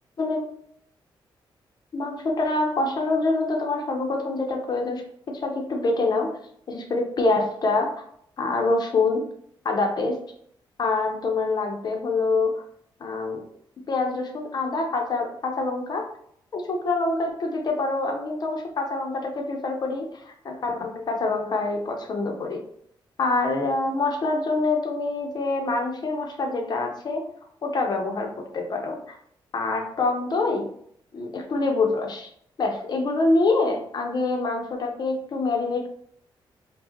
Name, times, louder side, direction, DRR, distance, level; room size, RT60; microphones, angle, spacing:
voice 1, 1.9-6.3 6.7-7.9 8.4-9.2 9.6-10.2 10.8-12.6 13.0-13.4 13.9-16.1 16.5-22.6 23.2-27.2 27.6-29.2 29.5-30.7 31.1-32.3 32.6-35.9, left 3 dB, 50° left, 3 dB, 0.8 m, -25 dB
4.7 x 2.3 x 2.9 m, 0.66 s
cardioid pair, 105°, 9 cm